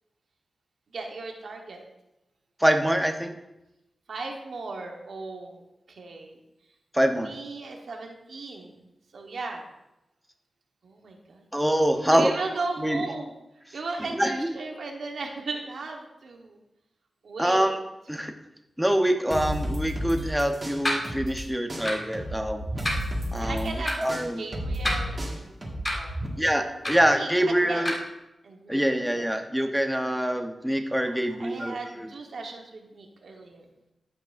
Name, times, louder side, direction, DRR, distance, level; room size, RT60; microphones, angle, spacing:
voice 1, 0.9-1.8 4.1-5.6 5.9-6.4 7.1-8.8 9.1-9.6 10.8-11.5 12.1-13.3 13.7-16.6 17.2-17.7 23.4-25.6 25.9-26.2 27.1-27.9 28.4-28.8 29.1-29.3 31.1-33.7, right 3 dB, 80° right, 2 dB, 1.2 m, -36 dB
voice 2, 2.6-3.3 6.9-7.3 11.5-12.3 12.8-13.1 14.1-14.5 17.4-17.8 18.1-18.3 18.8-22.6 23.3-24.4 26.4-27.9 28.7-32.1, equal, 5° right, 5 dB, 0.9 m, -25 dB
sound 1, 19.3-21.4 21.7-26.3, equal, 30° right, 1.7 m, -32 dB
sound 2, 20.8-21.0 21.8-22.1 22.8-23.0 23.8-24.0 24.8-25.3 25.9-26.0 26.8-27.1 27.9-28.0, left 1 dB, 30° left, 1.7 m, -28 dB
14.0 x 6.0 x 2.6 m, 0.92 s
wide cardioid pair, 85°, 0 cm